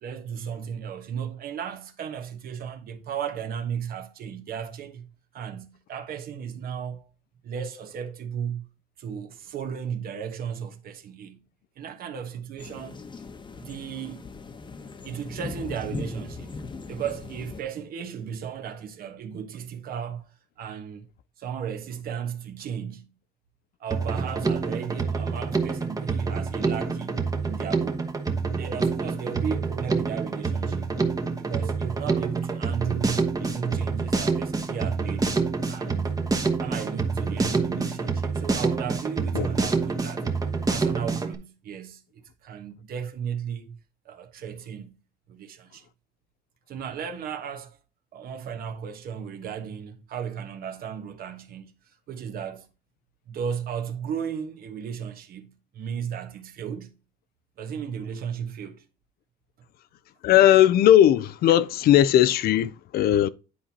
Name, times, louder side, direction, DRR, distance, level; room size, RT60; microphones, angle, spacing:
voice 1, 0.0-5.1 5.3-7.1 7.4-8.7 9.0-11.4 11.8-13.0 13.6-14.3 15.0-16.6 16.9-21.1 21.4-23.1 23.8-28.1 28.6-30.9 31.4-35.4 35.7-36.2 36.5-40.3 40.7-43.8 44.0-45.0 45.3-45.9 46.7-47.8 48.1-51.7 52.1-52.7 53.3-57.0 57.6-58.9, right 7 dB, 60° right, 1.2 m, -35 dB
sound 1, 12.6-17.6, left 3 dB, 30° left, 0.9 m, -39 dB
Drum kit, 23.9-41.3, right 4 dB, 20° right, 1.0 m, -27 dB
voice 2, 60.2-63.3, left 12 dB, 65° left, 0.5 m, -18 dB
10.0 x 4.4 x 2.8 m
cardioid pair, 110°, 17 cm